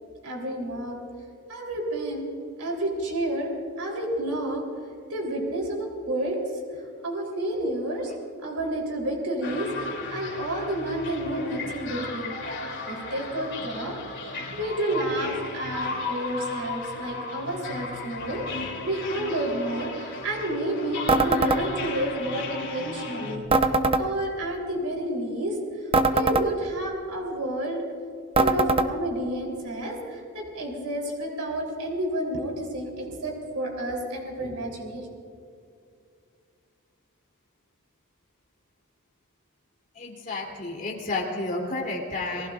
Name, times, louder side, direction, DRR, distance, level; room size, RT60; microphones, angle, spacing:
voice 1, 0.2-1.0 1.5-2.3 2.6-4.6 5.1-6.4 7.0-8.1 8.4-12.3 12.9-23.4 24.0-27.8 28.4-35.1, right 1 dB, 90° right, -1 dB, 3.6 m, -30 dB
sound 1, 9.4-23.4, left 3 dB, 55° left, 3.0 m, -35 dB
sound 2, 21.1-21.6 23.5-24.0 25.9-26.5 28.4-28.9, right 3 dB, 25° right, 0.7 m, -21 dB
voice 2, 39.9-42.5, left 2 dB, 35° left, -1 dB, 3.1 m, -31 dB
29.5 x 19.5 x 2.5 m, 2.4 s
head